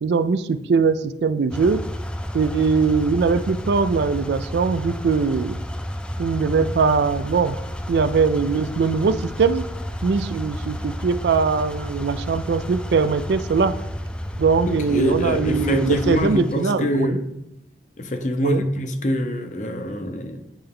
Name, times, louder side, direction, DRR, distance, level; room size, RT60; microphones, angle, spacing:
voice 1, 0.0-1.8 2.3-5.6 6.2-7.6 7.9-9.6 10.0-13.7 14.4-17.2 18.4-18.6, right 5 dB, 75° right, 0.4 m, -21 dB
sound 1, 1.5-16.6, equal, 5° left, 0.3 m, -31 dB
voice 2, 14.7-17.4 18.0-20.4, left 1 dB, 45° left, 0.6 m, -24 dB
8.7 x 3.3 x 3.6 m
head